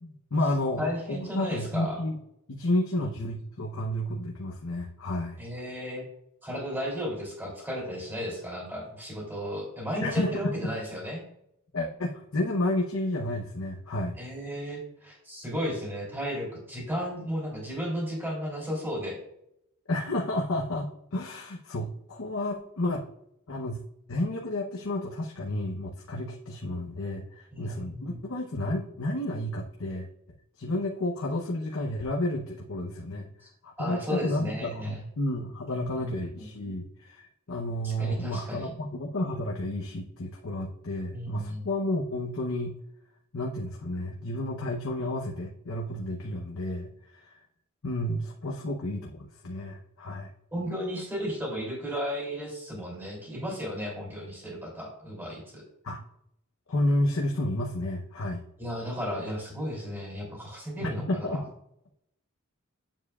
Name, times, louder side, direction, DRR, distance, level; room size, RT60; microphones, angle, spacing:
voice 1, 0.0-2.2 2.5-5.4 10.0-10.5 11.7-14.2 19.9-23.0 23.5-23.8 24.1-30.1 30.6-33.3 33.6-42.7 43.3-47.4 47.8-50.3 55.8-56.0 56.7-58.4 60.8-61.4, left 1 dB, 75° left, -1 dB, 0.8 m, -31 dB
voice 2, 0.8-2.0 5.4-6.0 6.4-11.2 14.2-19.2 27.5-28.2 33.4-33.5 33.8-35.0 35.7-36.5 37.8-38.7 41.1-41.7 50.5-55.6 58.6-61.4, equal, 10° right, -2 dB, 3.0 m, -34 dB
9.0 x 7.2 x 2.4 m, 0.76 s
head